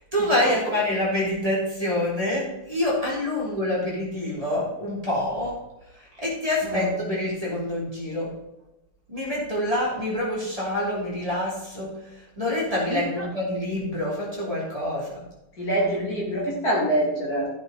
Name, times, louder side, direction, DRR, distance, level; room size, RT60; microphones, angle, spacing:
voice 1, 0.0-5.6 6.2-8.4 9.1-11.9 12.4-15.2, left 1 dB, 15° right, -6 dB, 3.0 m, -26 dB
voice 2, 12.9-13.3 15.6-17.5, right 1 dB, 45° left, -4 dB, 3.2 m, -26 dB
13.5 x 6.3 x 4.0 m, 0.92 s
omnidirectional pair, 2.2 m